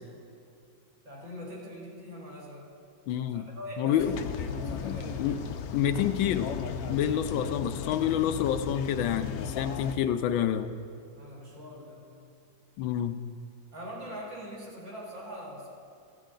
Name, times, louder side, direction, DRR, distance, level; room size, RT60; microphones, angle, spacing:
voice 1, 1.0-2.7 3.3-5.2 7.4-7.9 11.2-12.0 13.7-15.7, equal, 70° right, -5 dB, 3.0 m, -43 dB
voice 2, 3.1-3.5 3.8-4.2 4.8-5.4 5.7-6.5 6.9-10.8 12.8-13.2, left 10 dB, 90° left, 10 dB, 1.4 m, -28 dB
sound 1, 4.0-10.0, left 6 dB, 70° left, 0.9 m, -35 dB
15.0 x 9.3 x 3.8 m, 2.5 s
omnidirectional pair, 2.1 m